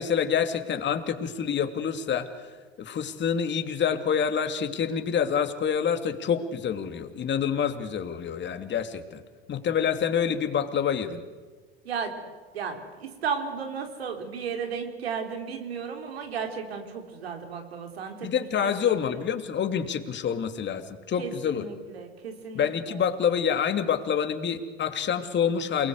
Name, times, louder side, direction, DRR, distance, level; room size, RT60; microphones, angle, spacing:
voice 1, 0.0-2.5 2.8-9.2 9.5-11.2 18.2-21.6 22.5-25.9, left 7 dB, 35° left, 7 dB, 2.7 m, -27 dB
voice 2, 12.5-18.3 18.6-18.7 21.2-22.7, right 6 dB, 85° right, 4 dB, 3.9 m, -34 dB
28.5 x 20.5 x 8.1 m, 1.4 s
hypercardioid pair, 80°, 30 cm